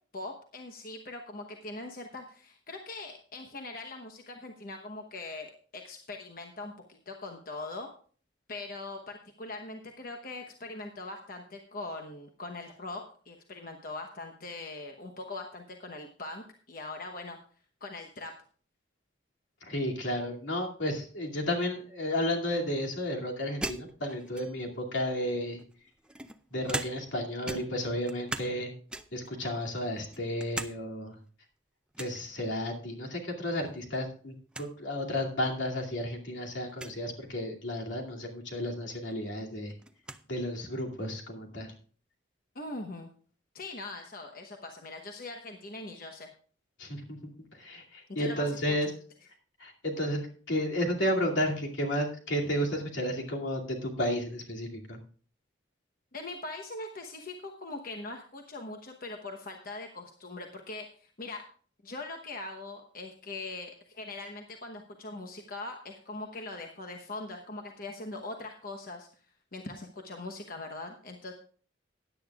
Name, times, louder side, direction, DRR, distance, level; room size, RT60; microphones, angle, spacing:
voice 1, 0.1-7.9 8.5-17.4 17.8-18.3 42.5-43.1 43.5-46.3 48.1-48.9 56.1-61.4 61.8-69.1 69.5-71.3, left 2 dB, 45° left, 3 dB, 1.0 m, -41 dB
voice 2, 19.6-25.6 26.5-28.7 29.1-31.2 32.0-39.7 40.3-41.7 46.8-47.2 47.6-48.9 49.6-55.0, equal, 75° left, 0 dB, 2.5 m, -32 dB
sound 1, 23.6-24.8 25.6-27.2 27.4-28.6 28.9-29.3 29.8-30.8 31.1-31.2 31.9-32.2 33.6-34.0 34.3-34.4 34.5-34.7 35.5-35.6 36.7-37.0 38.7-38.8 39.1-40.2, right 2 dB, 5° right, 0.4 m, -39 dB
16.5 x 10.0 x 2.4 m, 0.43 s
head